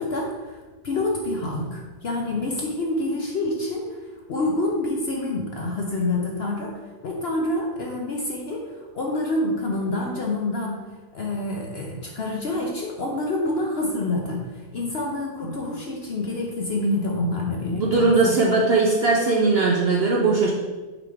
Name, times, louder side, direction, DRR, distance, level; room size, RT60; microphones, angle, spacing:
voice 1, 0.0-4.0 4.3-10.8 11.1-18.4, left 2 dB, 55° left, -1 dB, 0.8 m, -27 dB
voice 2, 17.7-20.5, right 3 dB, 55° right, -2 dB, 0.7 m, -20 dB
5.9 x 3.6 x 4.7 m, 1.3 s
omnidirectional pair, 1.6 m